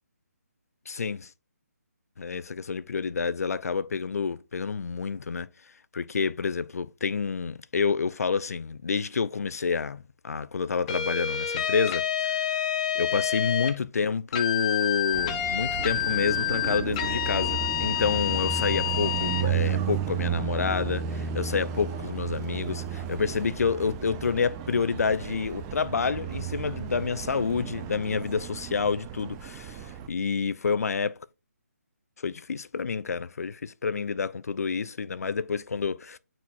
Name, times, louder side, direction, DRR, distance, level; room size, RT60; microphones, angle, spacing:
voice 1, 0.9-1.3 2.2-5.5 5.9-12.7 12.9-31.2 32.2-36.2, left 5 dB, 70° left, 0.6 m, -29 dB
sound 1, 10.9-13.8 14.3-19.5, left 10 dB, 25° left, 0.8 m, -28 dB
Car passing by, 15.1-30.1, right 7 dB, 15° right, 0.5 m, -33 dB
8.4 x 4.5 x 2.6 m
figure-of-eight pair, 155°, 9 cm